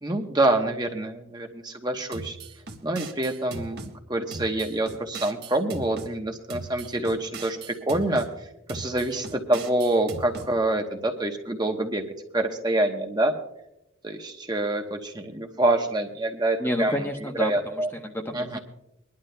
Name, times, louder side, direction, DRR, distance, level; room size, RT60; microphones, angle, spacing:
voice 1, 0.0-2.4 2.8-12.0 12.3-13.3 14.0-17.0 17.4-17.9 18.3-18.6, right 1 dB, 20° right, 3 dB, 1.0 m, -26 dB
sound 1, 2.1-3.9 4.3-6.1 6.5-8.3 8.7-10.5, right 3 dB, 50° right, 1.3 m, -39 dB
voice 2, 16.6-18.6, equal, 10° left, 3 dB, 0.9 m, -30 dB
25.0 x 11.5 x 2.2 m, 0.86 s
head